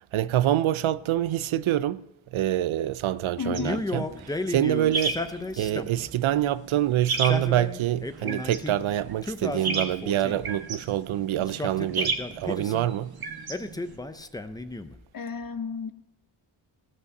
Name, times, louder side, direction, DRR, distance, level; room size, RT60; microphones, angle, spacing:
voice 1, 0.0-2.0 2.3-5.2 5.6-13.1, right 12 dB, 80° right, 0.5 m, -26 dB
voice 2, 3.4-3.9 15.1-15.9, left 5 dB, 45° left, 0.8 m, -32 dB
Male speech man speaking, 3.5-6.1 7.1-8.8 9.2-10.5 11.4-12.9 13.5-15.0, left 2 dB, 10° left, 0.4 m, -34 dB
sound 1, 3.5-14.0, right 4 dB, 50° right, 1.3 m, -35 dB
16.0 x 5.6 x 6.6 m
wide cardioid pair, 120°, 47 cm